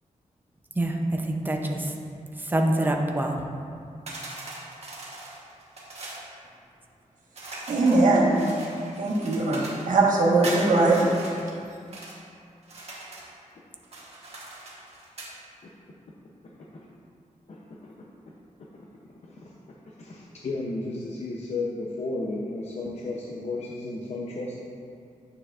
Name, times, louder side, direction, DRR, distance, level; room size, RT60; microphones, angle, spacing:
voice 1, 0.8-1.9 2.5-3.4, right 1 dB, 15° right, 2 dB, 0.6 m, -25 dB
sound 1, 4.1-6.3 7.3-9.9 10.4-12.2 12.6-13.3 13.8-15.4, right 2 dB, 50° right, 1.4 m, -40 dB
voice 2, 7.7-8.4 9.0-11.1, right 2 dB, 75° right, -5 dB, 1.5 m, -21 dB
voice 3, 20.0-24.6, left 2 dB, 55° left, -3 dB, 0.7 m, -33 dB
9.3 x 6.7 x 2.5 m, 2.3 s
wide cardioid pair, 130°, 13 cm